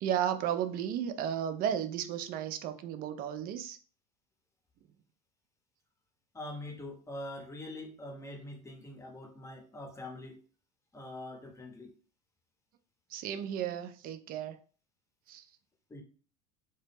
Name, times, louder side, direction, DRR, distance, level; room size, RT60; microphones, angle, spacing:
voice 1, 0.0-3.8 13.1-14.6 15.3-15.4, right 9 dB, 45° right, 0.4 m, -34 dB
voice 2, 6.3-10.4 10.9-11.9 15.9-16.0, left 1 dB, 15° left, 0.7 m, -44 dB
2.0 x 2.0 x 3.2 m
hypercardioid pair, 90°, 21 cm